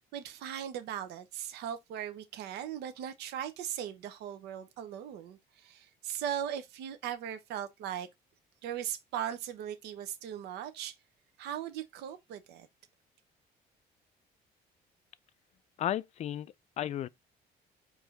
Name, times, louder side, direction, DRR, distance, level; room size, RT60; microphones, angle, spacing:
voice 1, 0.1-8.1 8.6-10.9 11.4-12.7, right 10 dB, 80° right, 0.7 m, -38 dB
voice 2, 15.8-17.1, left 11 dB, 40° left, 0.4 m, -34 dB
4.8 x 2.7 x 3.9 m
cardioid pair, 110°, 17 cm